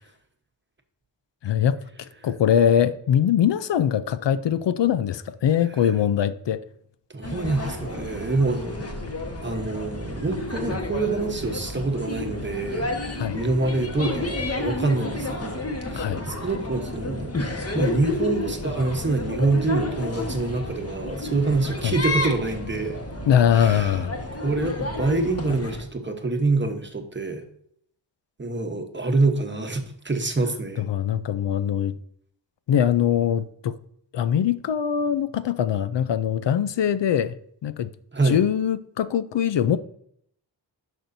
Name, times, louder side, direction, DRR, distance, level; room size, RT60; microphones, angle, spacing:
voice 1, 1.4-1.8 2.2-6.6 13.2-13.4 15.9-16.2 21.8-21.9 23.3-24.1 30.8-32.0 32.7-33.7 34.1-37.4 37.6-37.9 38.2-39.8, left 9 dB, 70° left, 0.5 m, -22 dB
voice 2, 7.1-8.9 9.4-17.4 17.7-23.0 23.5-24.0 24.4-27.4 28.4-30.9 38.1-38.4, right 3 dB, 25° right, 1.0 m, -26 dB
sound 1, 7.2-25.8, left 2 dB, 35° left, 1.2 m, -31 dB
10.5 x 6.1 x 2.6 m
wide cardioid pair, 125°, 45 cm